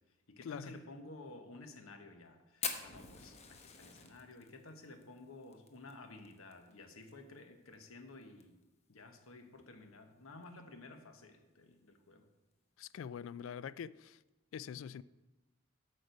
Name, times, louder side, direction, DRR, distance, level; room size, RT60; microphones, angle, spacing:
voice 1, 0.1-8.6 8.9-12.3, left 2 dB, 90° left, 1.1 m, -53 dB
Fire, 2.6-7.1 7.4-7.5 7.7-7.8 8.2-8.6 9.1-9.2 10.3-10.4, left 6 dB, 30° left, 0.8 m, -43 dB
voice 2, 12.8-14.2 14.5-15.0, left 7 dB, 65° left, 0.3 m, -44 dB
8.7 x 6.5 x 5.3 m
head